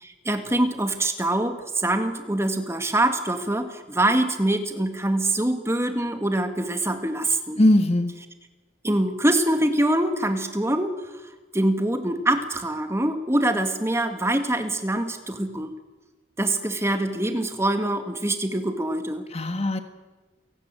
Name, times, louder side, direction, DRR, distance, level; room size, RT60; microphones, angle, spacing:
voice 1, 0.0-7.6 8.8-10.9 11.5-15.7 16.4-19.3, right 1 dB, 15° right, 7 dB, 2.0 m, -24 dB
voice 2, 7.6-8.2 19.3-19.8, left 1 dB, 30° left, 8 dB, 1.5 m, -20 dB
29.0 x 18.0 x 9.1 m, 1.2 s
head